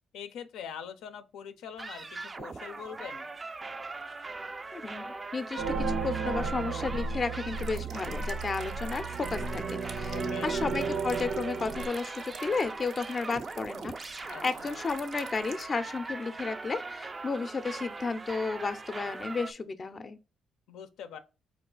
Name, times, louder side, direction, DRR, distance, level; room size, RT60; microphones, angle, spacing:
voice 1, 0.1-3.3 10.1-10.5 14.3-14.8 20.7-21.2, left 8 dB, 85° left, 0.5 m, -43 dB
sound 1, 1.8-19.5, right 3 dB, 25° right, 0.3 m, -41 dB
voice 2, 4.7-20.2, left 4 dB, 35° left, 0.5 m, -33 dB
sound 2, 5.6-11.9, right 4 dB, 90° right, 0.9 m, -34 dB
sound 3, 7.5-15.6, right 6 dB, 70° right, 0.6 m, -49 dB
4.6 x 2.4 x 3.7 m
cardioid pair, 90°, 0 cm